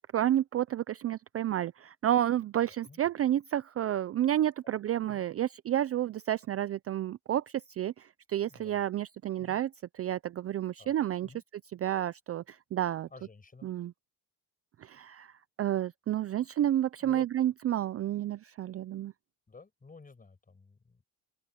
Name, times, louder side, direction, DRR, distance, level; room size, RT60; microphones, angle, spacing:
voice 1, 0.1-7.4 7.8-9.7 9.9-11.3 11.8-13.1 13.6-13.9 14.8-15.3 15.6-19.1, right 12 dB, 35° right, 0.5 m, -30 dB
voice 2, 2.6-3.0 4.6-4.8 5.1-5.2 8.5-8.8 9.4-9.6 10.8-10.9 11.2-11.4 13.1-13.7 17.0-17.3 19.5-21.0, left 4 dB, 20° left, 5.5 m, -53 dB
open air
cardioid pair, 120°, 40 cm